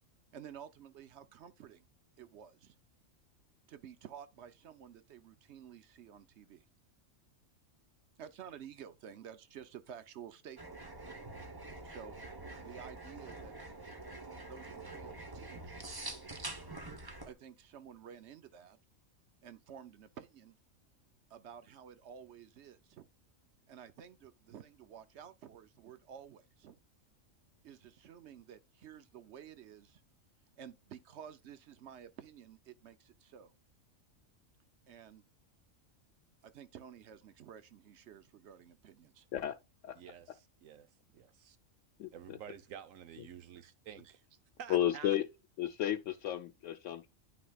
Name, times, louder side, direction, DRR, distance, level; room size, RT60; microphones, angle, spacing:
voice 1, 0.3-1.9 2.2-2.7 3.7-6.6 8.2-10.7 11.8-12.2 12.6-13.5 14.5-15.8 17.2-18.8 19.4-20.6 21.3-23.1 23.7-26.8 27.6-30.0 30.6-33.5 34.9-35.2 36.4-39.3 44.0-44.1, right 8 dB, 65° right, 0.9 m, -52 dB
sound 1, 10.6-17.3, right 2 dB, 20° right, 1.0 m, -46 dB
voice 2, 39.9-41.6 42.1-44.2 44.6-45.2, right 8 dB, 85° right, 1.2 m, -50 dB
voice 3, 42.0-42.4 44.7-45.3 45.6-47.1, left 11 dB, 75° left, 0.9 m, -33 dB
10.0 x 6.0 x 2.3 m
omnidirectional pair, 1.3 m